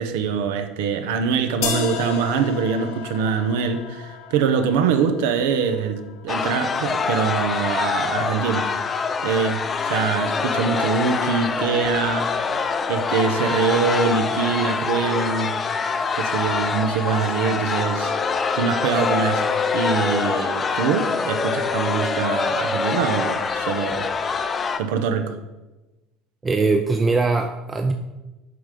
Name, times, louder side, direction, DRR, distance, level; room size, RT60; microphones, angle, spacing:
voice 1, 0.0-8.7 9.2-12.4 12.9-15.6 16.2-18.1 18.5-19.5 19.7-24.1 24.8-25.3, right 6 dB, 80° right, 8 dB, 0.7 m, -23 dB
sound 1, 1.6-7.6, left 7 dB, 85° left, 1.2 m, -34 dB
sound 2, 6.3-24.8, left 5 dB, 30° left, 0.6 m, -25 dB
voice 2, 26.4-27.9, right 3 dB, 20° right, 5 dB, 0.5 m, -21 dB
7.8 x 3.8 x 5.0 m, 1.1 s
supercardioid pair, 110°, 0 cm